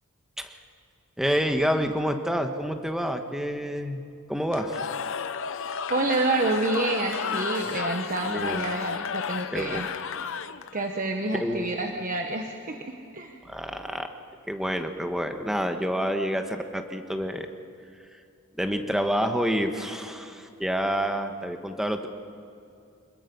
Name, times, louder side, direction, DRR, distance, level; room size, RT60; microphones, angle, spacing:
voice 1, 1.2-4.0 4.3-4.8 8.2-8.7 9.5-9.8 11.3-11.9 13.4-14.1 14.5-17.5 18.6-22.1, equal, ahead, 6 dB, 1.3 m, -28 dB
Cheering / Crowd, 4.5-10.9, left 6 dB, 65° left, 0.8 m, -32 dB
voice 2, 5.9-9.9 10.7-13.4, right 2 dB, 40° right, 3 dB, 1.3 m, -28 dB
27.0 x 21.0 x 5.5 m, 2.5 s
head